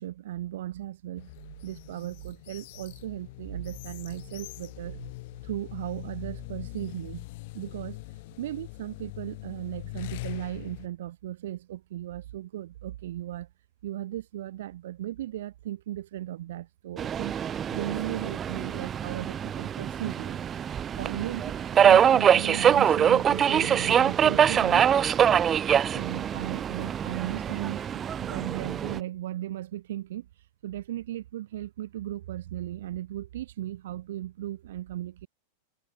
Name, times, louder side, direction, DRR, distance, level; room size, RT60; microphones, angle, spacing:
voice 1, 0.0-1.3 1.6-5.0 5.4-7.3 7.5-8.0 8.4-13.5 13.8-17.3 17.7-20.4 21.0-21.5 21.8-24.8 25.9-27.8 28.2-30.3 30.6-35.3, right 13 dB, 60° right, 1.8 m, -36 dB
sound 1, 1.2-10.9, left 22 dB, 50° left, 1.8 m, -42 dB
Subway metro underground, 17.0-29.0, right 8 dB, 25° right, 0.3 m, -24 dB
figure-of-eight pair, 90°, 0 cm